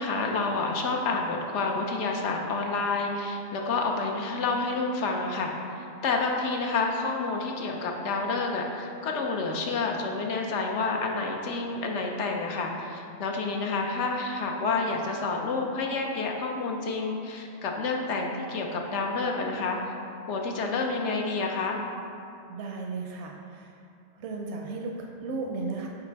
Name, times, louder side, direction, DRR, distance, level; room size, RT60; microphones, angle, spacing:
voice 1, 0.0-19.8 20.3-21.8, left 3 dB, 85° left, 1 dB, 1.0 m, -29 dB
voice 2, 22.5-23.8 24.1-25.9, right 3 dB, 75° right, 1 dB, 0.8 m, -35 dB
5.8 x 4.1 x 4.5 m, 2.5 s
omnidirectional pair, 1.2 m